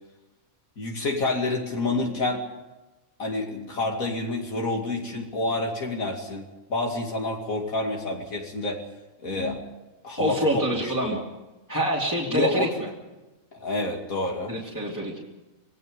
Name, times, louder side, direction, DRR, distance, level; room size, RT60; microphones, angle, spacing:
voice 1, 0.8-2.4 3.2-8.8 9.2-9.6 10.0-10.6 11.0-11.1 12.3-12.7 13.5-14.5, left 2 dB, 90° left, 0 dB, 3.0 m, -28 dB
voice 2, 10.2-11.3 11.7-12.9 14.5-15.2, equal, 15° right, -4 dB, 2.9 m, -26 dB
26.0 x 19.0 x 5.3 m, 1.1 s
omnidirectional pair, 1.4 m